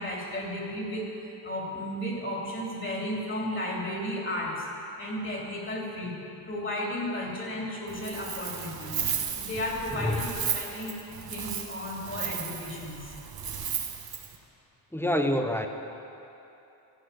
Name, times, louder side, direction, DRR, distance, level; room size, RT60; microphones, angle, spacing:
voice 1, 0.0-4.7 5.0-6.1 6.5-9.0 9.4-11.0 11.3-13.0, left 1 dB, 25° left, -2 dB, 3.2 m, -34 dB
Wind, 7.9-14.3, right 7 dB, 50° right, 1.5 m, -35 dB
voice 2, 9.9-10.2 14.9-15.7, left 1 dB, 5° left, 5 dB, 0.9 m, -27 dB
14.5 x 8.7 x 6.9 m, 3.0 s
cardioid pair, 100°, 48 cm